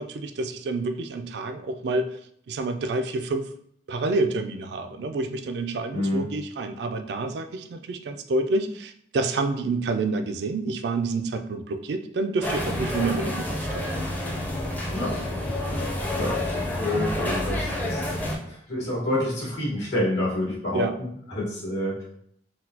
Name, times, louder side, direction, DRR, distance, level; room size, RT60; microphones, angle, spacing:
voice 1, 0.0-2.2 2.5-3.5 3.9-13.9 20.7-20.9, right 3 dB, 65° right, 8 dB, 0.3 m, -28 dB
voice 2, 5.9-6.3 14.9-15.2 16.2-18.1 18.4-22.0, left 1 dB, 75° left, -5 dB, 1.4 m, -28 dB
sound 1, 12.4-18.4, left 1 dB, 10° left, 0.5 m, -28 dB
3.9 x 2.2 x 2.7 m, 0.67 s
head